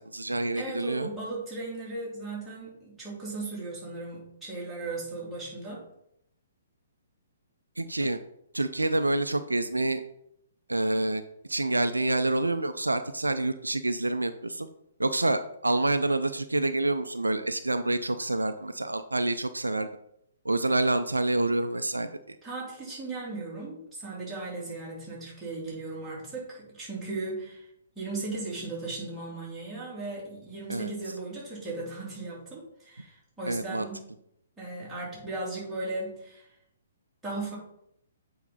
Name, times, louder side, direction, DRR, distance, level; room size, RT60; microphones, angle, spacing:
voice 1, 0.0-1.1 7.8-8.2 8.5-10.0 10.7-11.2 11.5-14.7 15.0-19.9 20.4-22.4 30.7-30.9 33.5-33.9, right 2 dB, 80° right, 10 dB, 0.5 m, -27 dB
voice 2, 0.5-5.9 22.4-27.7 27.9-34.1 34.6-36.5 37.2-37.6, right 2 dB, 5° right, -7 dB, 3.1 m, -37 dB
8.1 x 5.0 x 3.9 m, 0.76 s
figure-of-eight pair, 125°, 0 cm